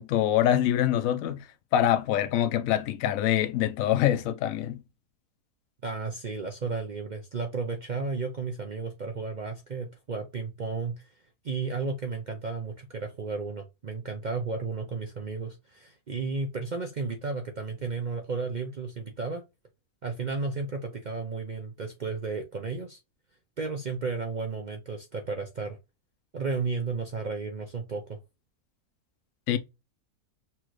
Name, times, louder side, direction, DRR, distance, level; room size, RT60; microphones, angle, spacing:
voice 1, 0.0-1.5 1.7-4.8 29.5-29.6, left 11 dB, 70° left, 1.0 m, -25 dB
voice 2, 5.8-11.1 11.4-19.4 20.0-23.0 23.6-25.8 26.3-28.2, right 4 dB, 60° right, 0.4 m, -33 dB
5.8 x 2.5 x 3.0 m
omnidirectional pair, 1.6 m